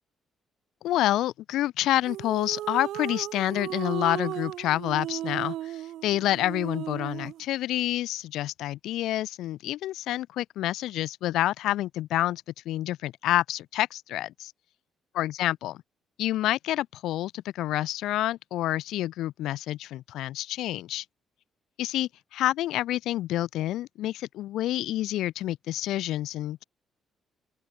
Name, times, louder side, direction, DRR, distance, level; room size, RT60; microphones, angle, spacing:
voice 1, 0.8-14.5 15.2-15.8 16.2-21.0 21.8-26.6, left 14 dB, 85° left, 0.3 m, -28 dB
sound 1, 2.1-7.4, right 13 dB, 85° right, 0.6 m, -35 dB
open air
cardioid pair, 90°, 0 cm